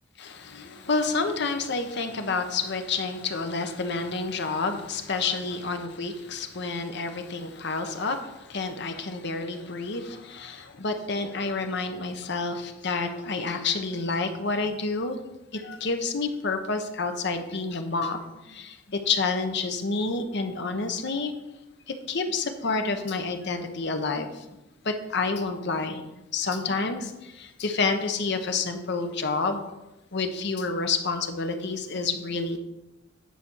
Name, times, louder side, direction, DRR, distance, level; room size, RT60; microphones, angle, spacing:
voice 1, 0.2-15.2 15.5-21.3 21.9-24.4 24.8-26.0 26.3-29.7 30.1-32.6, left 4 dB, 65° left, 6 dB, 1.0 m, -29 dB
9.2 x 4.3 x 6.3 m, 0.98 s
head